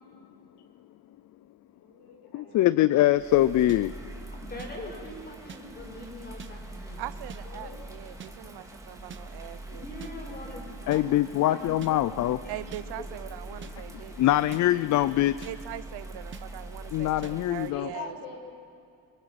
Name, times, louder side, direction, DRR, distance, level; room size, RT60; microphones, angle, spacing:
voice 1, 1.7-2.5 7.4-7.8 17.7-18.4, left 5 dB, 70° left, 0 dB, 6.4 m, -42 dB
voice 2, 2.3-3.9 10.9-12.4 13.9-15.5 16.9-17.9, left 14 dB, 50° left, 16 dB, 0.5 m, -23 dB
Bird vocalization bird call bird song / Rain, 3.1-17.7, right 1 dB, 10° right, 2.1 m, -43 dB
sound 1, 3.7-3.8 4.6-4.7 5.5-5.6 6.4-6.5 7.3-7.4 8.2-8.3 9.1-9.2 10.0-10.1 10.9-11.0 11.8-11.9 12.7-12.8 13.6-13.7 14.5-14.6 15.4-15.5 16.3-16.4 17.2-17.3, right 7 dB, 30° right, 0.9 m, -43 dB
voice 3, 4.4-7.1 9.7-11.6 11.9-12.0 12.4-12.6 13.0-13.1, left 1 dB, 25° left, 0 dB, 5.7 m, -42 dB
voice 4, 7.0-9.9 12.5-14.1 15.4-17.2 17.5-18.2, right 14 dB, 75° right, 15 dB, 0.8 m, -41 dB
25.0 x 24.0 x 5.9 m, 2.4 s
cardioid pair, 145°, 40 cm